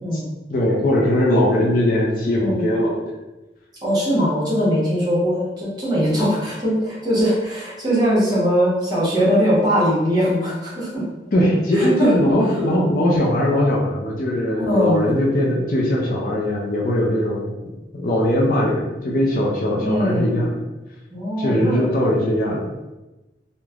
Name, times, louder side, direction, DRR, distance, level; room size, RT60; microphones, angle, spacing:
voice 1, 0.5-3.0 11.3-17.5 17.9-20.6 21.4-22.7, left 1 dB, 45° left, -3 dB, 0.4 m, -20 dB
voice 2, 3.8-11.1 11.7-12.1 14.6-15.0 19.8-20.2 21.1-21.9, equal, 20° right, -8 dB, 1.0 m, -20 dB
3.1 x 2.1 x 2.4 m, 1.0 s
head